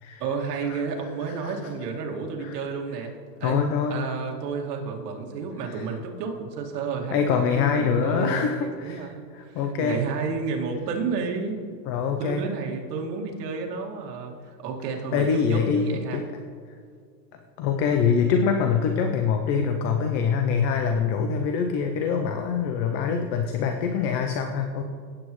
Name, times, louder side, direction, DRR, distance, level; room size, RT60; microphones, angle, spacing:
voice 1, 0.2-3.1 3.4-11.8 12.2-16.2, right 5 dB, 70° right, 1 dB, 2.1 m, -31 dB
voice 2, 3.4-4.1 5.7-5.9 7.1-9.1 9.3-10.0 11.9-12.4 15.1-16.3 17.6-24.8, left 6 dB, 30° left, 5 dB, 0.4 m, -24 dB
16.5 x 8.6 x 3.1 m, 2.1 s
supercardioid pair, 145°, 49 cm